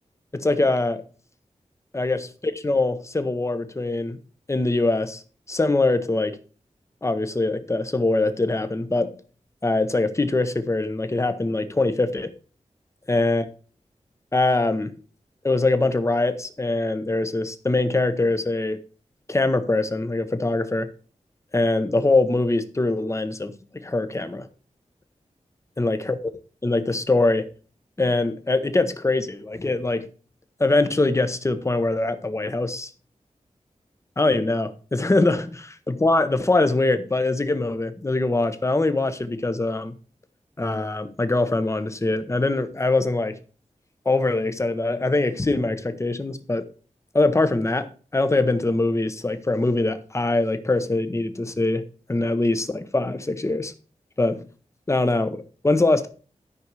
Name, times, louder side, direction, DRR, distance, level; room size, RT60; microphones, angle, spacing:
voice 1, 0.3-1.0 1.9-4.2 4.5-5.2 5.5-6.4 7.0-9.1 9.6-12.3 13.1-13.4 14.3-14.9 15.4-18.8 19.3-20.9 21.5-24.5 25.8-26.2 26.6-27.5 28.0-30.1 30.6-32.9 34.2-39.9 40.6-43.4 44.0-46.7 47.1-51.8 52.1-53.7 54.2-54.5 54.9-56.1, left 2 dB, 25° left, 1.0 m, -23 dB
12.5 x 5.4 x 4.8 m
wide cardioid pair, 115°, 12 cm